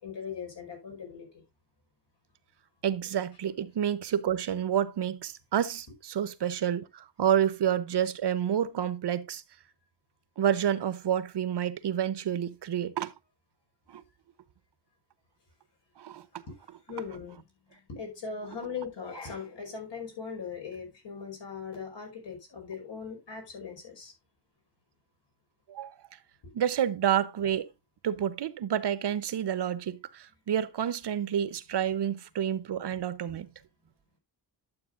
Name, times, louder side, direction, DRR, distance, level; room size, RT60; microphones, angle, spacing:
voice 1, 0.0-1.4 16.5-16.6 16.9-24.1 33.4-33.5, left 6 dB, 85° left, 5.2 m, -40 dB
voice 2, 2.8-9.4 10.4-13.1 13.9-14.0 16.0-16.4 25.7-25.9 26.5-27.7 28.0-33.5, right 9 dB, 75° right, 0.9 m, -29 dB
11.5 x 7.8 x 2.5 m
wide cardioid pair, 145°, 42 cm